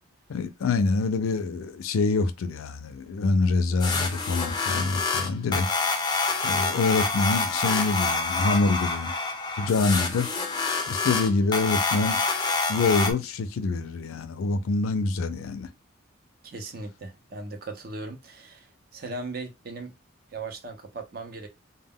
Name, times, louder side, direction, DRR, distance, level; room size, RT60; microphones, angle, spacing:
voice 1, 0.3-5.7 6.4-9.1 9.6-10.3 10.9-12.2 12.7-15.7, left 3 dB, 90° left, 0.4 m, -25 dB
sound 1, 3.8-13.1, left 4 dB, 20° left, 0.4 m, -27 dB
voice 2, 16.4-20.0 20.3-21.5, right 3 dB, 45° right, 0.6 m, -38 dB
2.1 x 2.1 x 3.5 m
head